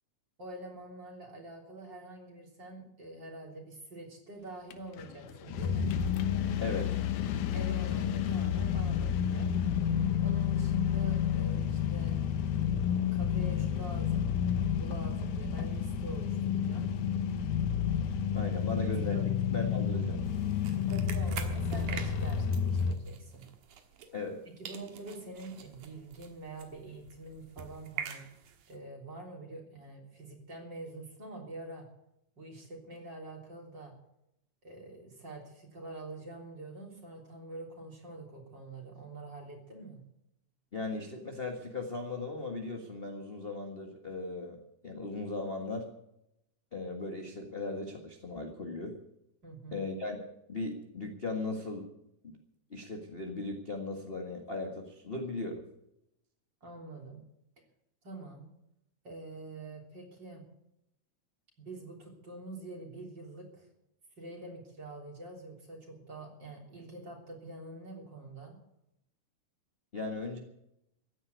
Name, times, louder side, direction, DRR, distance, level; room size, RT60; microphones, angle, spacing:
voice 1, 0.4-5.9 7.5-9.5 10.2-12.2 13.1-14.3 14.7-16.9 19.1-19.2 20.9-23.5 24.4-28.3 28.7-31.9 32.4-34.0 34.6-40.0 49.4-49.9 56.6-57.2 58.0-58.5 59.0-60.4 61.6-63.7 64.2-68.6, right 2 dB, 35° right, 1 dB, 3.9 m, -46 dB
sound 1, 4.7-4.8 5.0-23.0, left 8 dB, 75° left, 2.5 m, -30 dB
voice 2, 6.6-7.0 18.3-19.2 19.5-20.2 24.1-24.4 40.7-44.6 44.8-45.8 46.7-49.0 49.7-50.2 50.5-51.9 52.7-55.6 69.9-70.4, left 3 dB, 30° left, 3 dB, 1.0 m, -37 dB
sound 2, 20.2-24.4 24.6-28.7, right 8 dB, 75° right, 2.9 m, -45 dB
15.5 x 9.8 x 8.0 m, 0.81 s
omnidirectional pair, 3.7 m